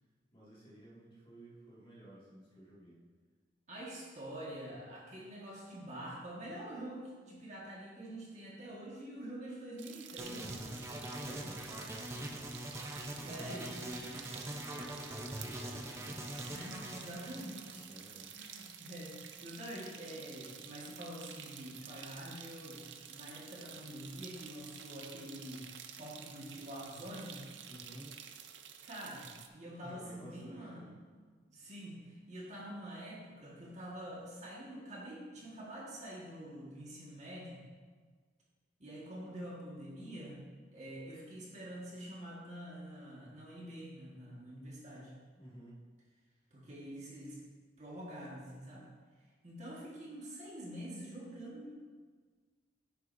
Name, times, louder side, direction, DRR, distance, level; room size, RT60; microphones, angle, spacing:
voice 1, 0.3-3.0 11.1-12.4 13.1-16.4 17.8-18.4 27.7-28.2 29.8-31.0 45.4-45.8, right 1 dB, 30° left, -7 dB, 2.0 m, -52 dB
voice 2, 3.7-10.8 13.1-13.8 16.5-17.9 18.3-22.8 23.1-25.7 26.0-27.4 28.8-30.8 31.5-37.6 38.8-40.4 40.7-45.1 46.5-47.4 47.8-48.9 49.4-51.7, right 1 dB, 40° right, -5 dB, 1.6 m, -46 dB
sound 1, 9.8-29.5, right 8 dB, 75° right, 0.6 m, -50 dB
sound 2, 10.2-18.3, right 1 dB, 15° right, 0.6 m, -43 dB
9.9 x 7.6 x 2.7 m, 1.5 s
head